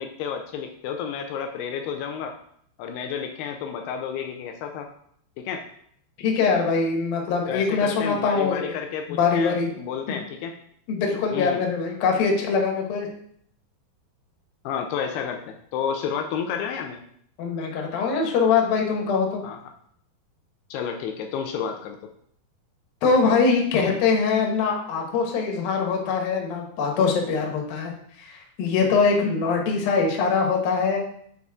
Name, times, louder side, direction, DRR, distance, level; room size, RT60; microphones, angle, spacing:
voice 1, 0.0-2.4 2.8-4.9 5.4-5.6 7.5-10.6 11.3-11.6 14.7-17.0 19.4-19.6 20.7-22.0, left 7 dB, 80° left, 4 dB, 2.4 m, -31 dB
voice 2, 6.2-8.8 9.1-9.7 10.1-10.2 10.9-13.1 17.4-19.4 23.0-27.9 28.2-31.0, left 5 dB, 65° left, 1 dB, 2.9 m, -23 dB
8.2 x 5.4 x 3.6 m, 0.66 s
omnidirectional pair, 5.1 m